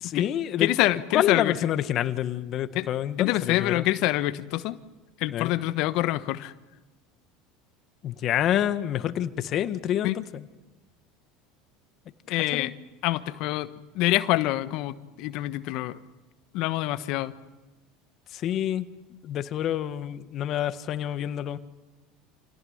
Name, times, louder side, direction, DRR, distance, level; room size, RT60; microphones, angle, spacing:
voice 1, 0.0-0.7 1.1-3.8 5.3-5.5 8.0-10.4 12.3-12.7 18.3-18.9 19.2-21.6, left 11 dB, 50° left, 11 dB, 1.5 m, -28 dB
voice 2, 0.6-1.5 2.7-2.9 3.2-4.8 5.2-6.5 10.0-10.2 12.3-12.7 13.0-13.7 13.9-16.0 16.5-17.3, left 16 dB, 65° left, 12 dB, 1.2 m, -26 dB
28.0 x 18.0 x 9.7 m, 1.1 s
supercardioid pair, 100°, 0 cm